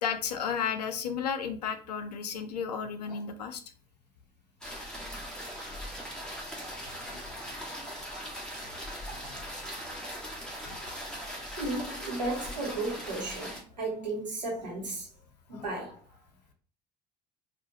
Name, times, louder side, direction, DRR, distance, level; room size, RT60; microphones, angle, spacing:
voice 1, 0.0-3.6 7.1-7.4 9.1-9.3 10.6-10.8 15.5-15.6, left 7 dB, 75° left, 0.5 m, -33 dB
sound 1, 4.6-13.6, equal, 5° left, 1.5 m, -40 dB
voice 2, 9.6-10.0 10.5-10.6 10.9-15.1 15.5-16.0, right 2 dB, 90° right, 1.1 m, -35 dB
4.6 x 2.5 x 2.7 m
figure-of-eight pair, 60°, 21 cm